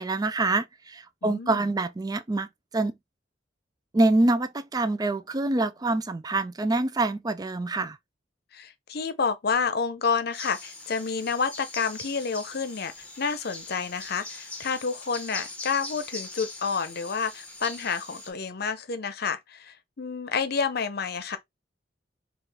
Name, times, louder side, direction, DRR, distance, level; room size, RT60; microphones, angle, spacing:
voice 1, 0.0-2.5 2.7-2.9 3.9-8.0, right 2 dB, 20° right, 0.4 m, -25 dB
voice 2, 1.2-1.6 8.5-21.4, left 5 dB, 55° left, 0.7 m, -29 dB
sound 1, 10.3-18.3, left 2 dB, 10° left, 1.4 m, -41 dB
5.6 x 2.5 x 3.3 m
head